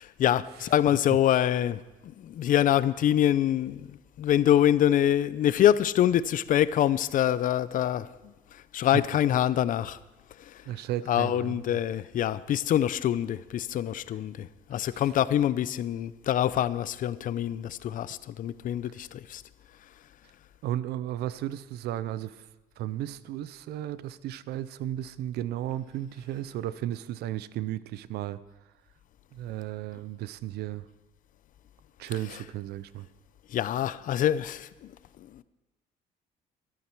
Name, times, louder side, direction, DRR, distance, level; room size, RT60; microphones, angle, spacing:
voice 1, 0.0-8.1 8.7-10.0 11.1-19.4 33.5-34.9 35.3-35.4, left 11 dB, 55° left, 0.5 m, -25 dB
voice 2, 10.7-11.8 14.9-15.1 20.6-22.5 22.8-28.4 29.3-30.8 32.0-33.1, right 12 dB, 75° right, 0.6 m, -34 dB
14.0 x 12.0 x 4.5 m
cardioid pair, 110°, 17 cm